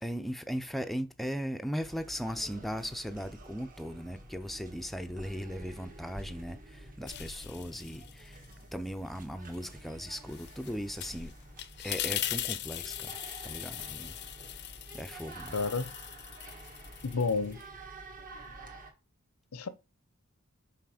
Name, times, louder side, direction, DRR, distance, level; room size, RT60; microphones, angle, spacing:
voice 1, 0.0-8.4 8.7-11.3 11.8-13.2 13.4-14.2 14.6-14.7 14.9-15.6, equal, ahead, 0.5 m, -38 dB
sound 1, 1.8-18.9, right 2 dB, 40° right, 1.4 m, -49 dB
sound 2, 7.1-8.6 9.0-17.7, left 12 dB, 50° left, 0.5 m, -40 dB
voice 2, 15.5-15.9 17.0-17.6 19.5-19.7, left 4 dB, 90° left, 0.7 m, -30 dB
5.8 x 4.8 x 4.9 m
head